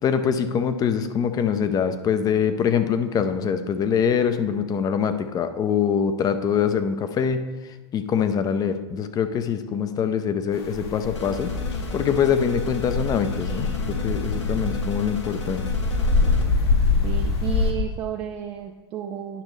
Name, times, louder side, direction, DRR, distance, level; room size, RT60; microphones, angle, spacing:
voice 1, 0.0-7.5 7.9-11.5 11.9-15.6, left 7 dB, 25° left, 10 dB, 0.5 m, -24 dB
sound 1, 10.5-17.7, left 3 dB, 60° left, 1.2 m, -25 dB
sound 2, 11.1-16.4, left 4 dB, 85° left, 1.1 m, -37 dB
voice 2, 17.0-19.4, right 8 dB, 35° right, 2 dB, 0.6 m, -32 dB
10.0 x 6.1 x 3.2 m, 1.2 s
figure-of-eight pair, 95°, 15 cm